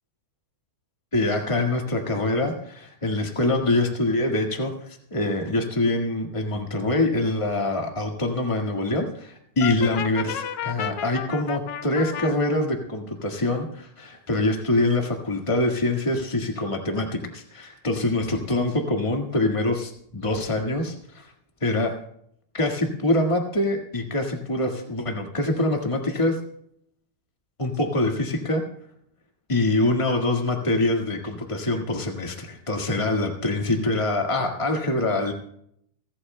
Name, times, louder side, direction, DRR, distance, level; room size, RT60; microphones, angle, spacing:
voice 1, 1.1-21.3 21.6-22.0 22.5-26.4 27.6-28.6 29.5-35.3, left 2 dB, 35° left, 2 dB, 0.5 m, -25 dB
Brass instrument, 9.6-12.3, left 10 dB, 80° left, 1.3 m, -32 dB
30.0 x 13.0 x 2.2 m, 0.69 s
omnidirectional pair, 3.7 m